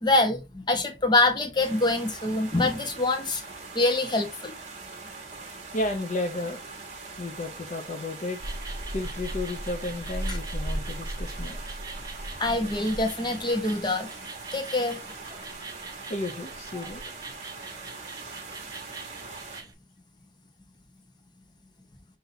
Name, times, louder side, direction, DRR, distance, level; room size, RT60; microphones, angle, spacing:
voice 1, 0.0-3.4 3.7-4.5 12.4-14.1 14.5-15.0, left 2 dB, 25° left, 0.9 m, -25 dB
sound 1, 1.6-19.6, right 4 dB, 40° right, 1.1 m, -42 dB
voice 2, 5.7-6.7 7.2-8.4 8.9-11.6 16.1-17.0, left 2 dB, 40° left, 0.6 m, -32 dB
sound 2, 8.4-19.7, right 1 dB, 20° right, 0.5 m, -38 dB
5.5 x 2.8 x 2.7 m
head